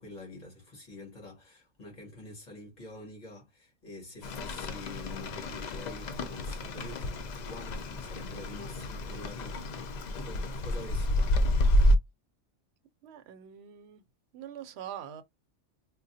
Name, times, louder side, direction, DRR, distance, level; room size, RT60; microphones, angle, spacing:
voice 1, 0.0-11.6, left 2 dB, 35° left, 1.7 m, -47 dB
Rain, 4.2-12.0, left 1 dB, 85° left, 0.3 m, -29 dB
voice 2, 13.0-14.0 14.3-15.2, right 10 dB, 65° right, 0.8 m, -43 dB
3.7 x 2.2 x 2.7 m
omnidirectional pair, 1.3 m